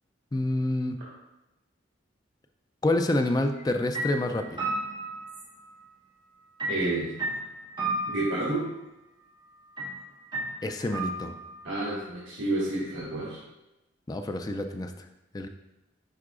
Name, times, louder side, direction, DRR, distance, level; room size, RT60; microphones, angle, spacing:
voice 1, 0.3-1.0 2.8-4.7 10.6-11.3 14.1-14.9 15.3-15.5, left 1 dB, 20° left, 6 dB, 0.3 m, -27 dB
sound 1, 3.5-3.7 3.9-5.8 6.6-8.6 9.8-9.9 10.3-11.6, right 2 dB, 25° right, 1.9 m, -33 dB
voice 2, 6.7-7.1 8.1-8.6 11.6-13.4, right 2 dB, 75° right, -6 dB, 1.5 m, -29 dB
9.4 x 4.6 x 2.4 m, 0.97 s
head